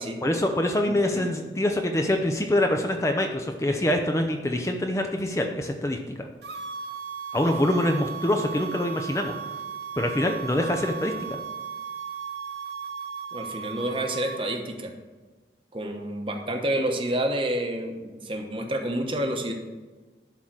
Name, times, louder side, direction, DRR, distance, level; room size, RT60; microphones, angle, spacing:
voice 1, 0.2-6.3 7.3-9.3 10.0-11.4, left 1 dB, 15° left, 4 dB, 0.5 m, -25 dB
sound 1, 6.4-14.6, right 6 dB, 75° right, 0.7 m, -36 dB
voice 2, 13.3-14.9 15.7-19.5, right 1 dB, 30° right, 3 dB, 1.0 m, -29 dB
11.5 x 3.8 x 6.0 m, 1.3 s
head